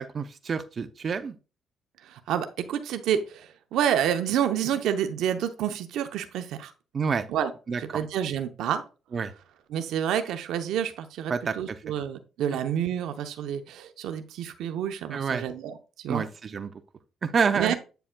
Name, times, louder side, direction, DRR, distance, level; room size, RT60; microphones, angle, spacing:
voice 1, 0.0-1.3 6.9-7.3 7.7-7.8 9.1-9.3 11.3-11.5 15.1-15.4 16.1-16.7 17.2-17.7, right 5 dB, 45° right, 11 dB, 0.6 m, -28 dB
voice 2, 2.0-6.7 7.3-7.5 7.8-8.8 9.7-16.2 17.5-17.7, right 9 dB, 85° right, 8 dB, 0.7 m, -29 dB
8.8 x 6.9 x 2.2 m, 0.32 s
cardioid pair, 90°, 0 cm